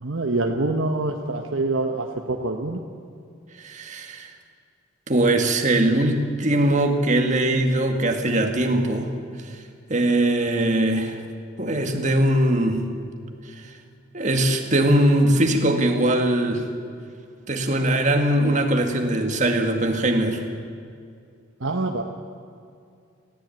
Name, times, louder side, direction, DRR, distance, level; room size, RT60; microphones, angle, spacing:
voice 1, 0.0-2.8 21.6-22.0, right 2 dB, 65° right, 2 dB, 1.2 m, -25 dB
voice 2, 3.6-4.3 5.1-9.1 9.4-9.6 9.9-11.2 11.6-12.9 13.6-13.7 14.1-16.7 17.5-20.4, right 1 dB, 35° right, 4 dB, 1.9 m, -21 dB
18.0 x 15.5 x 9.3 m, 2.4 s
head